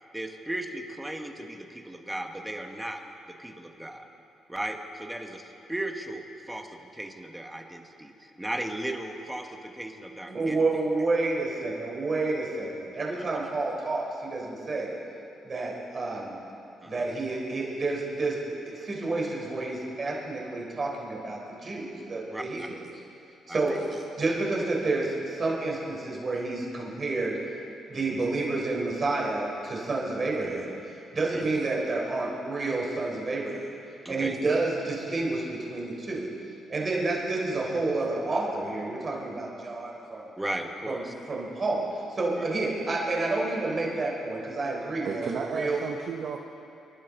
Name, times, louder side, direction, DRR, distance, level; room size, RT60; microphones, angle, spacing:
voice 1, 0.1-3.0 3.3-4.1 4.5-10.6 16.8-17.1 22.3-22.7 23.5-23.8 27.9-28.2 31.1-31.5 34.0-34.4 40.4-41.1 42.4-42.5, right 1 dB, 10° right, 4 dB, 1.4 m, -36 dB
voice 2, 10.3-15.0 15.4-16.4 16.8-18.4 18.7-22.8 23.5-27.4 27.9-30.7 31.1-33.7 34.1-36.3 36.7-40.3 40.9-41.8 42.1-45.8, right 3 dB, 40° right, -3 dB, 4.0 m, -29 dB
voice 3, 45.0-46.4, right 6 dB, 60° right, 3 dB, 0.8 m, -33 dB
27.5 x 11.5 x 3.9 m, 2.8 s
cardioid pair, 90°, 0 cm